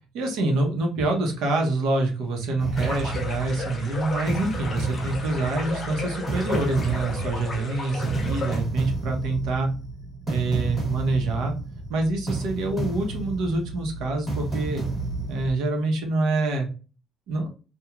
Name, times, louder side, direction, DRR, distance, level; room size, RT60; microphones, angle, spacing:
voice 1, 0.1-9.7 10.3-11.5 11.9-14.8 15.3-16.7 17.3-17.5, right 2 dB, 70° right, 2 dB, 0.8 m, -26 dB
sound 1, 2.6-15.5, right 2 dB, 5° right, 0.9 m, -31 dB
sound 2, 2.8-8.6, left 3 dB, 25° left, 0.5 m, -35 dB
2.9 x 2.3 x 2.3 m, 0.34 s
cardioid pair, 180°, 0 cm